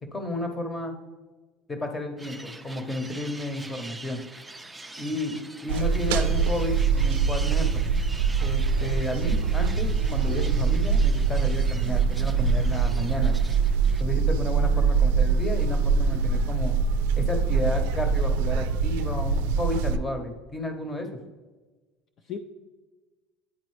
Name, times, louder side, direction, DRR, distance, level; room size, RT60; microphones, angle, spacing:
voice 1, 0.0-0.9 1.7-4.2 5.0-7.9 8.4-13.3 14.0-16.7 17.2-21.1, left 2 dB, 20° left, 5 dB, 1.0 m, -32 dB
sound 1, 2.2-14.0, right 2 dB, 10° right, 0.4 m, -44 dB
voice 2, 5.7-6.3 22.2-22.4, left 7 dB, 45° left, 5 dB, 0.5 m, -39 dB
sound 2, 5.7-20.0, right 5 dB, 80° right, 0.3 m, -23 dB
9.7 x 4.0 x 3.2 m, 1.3 s
supercardioid pair, 110°, 0 cm